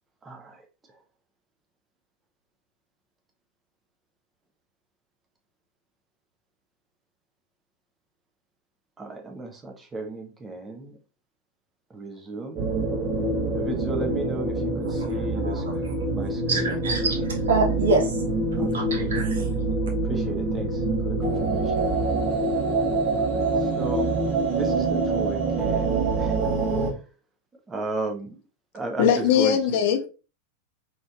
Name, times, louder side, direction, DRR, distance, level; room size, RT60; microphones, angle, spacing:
voice 1, 0.2-0.6 9.0-11.0 11.9-12.7 13.5-16.8 18.6-19.2 20.0-21.9 23.2-23.4 23.8-24.2 24.5-26.5 27.7-28.4 28.7-29.8, right 2 dB, 15° right, 0.6 m, -35 dB
sound 1, 12.6-26.9, right 2 dB, 40° right, 1.0 m, -25 dB
voice 2, 16.5-17.2 17.5-18.1 18.7-19.4, right 3 dB, 65° right, 0.9 m, -25 dB
voice 3, 29.0-30.1, left 8 dB, 50° left, 0.5 m, -20 dB
3.1 x 2.9 x 2.3 m
figure-of-eight pair, 90°, 0 cm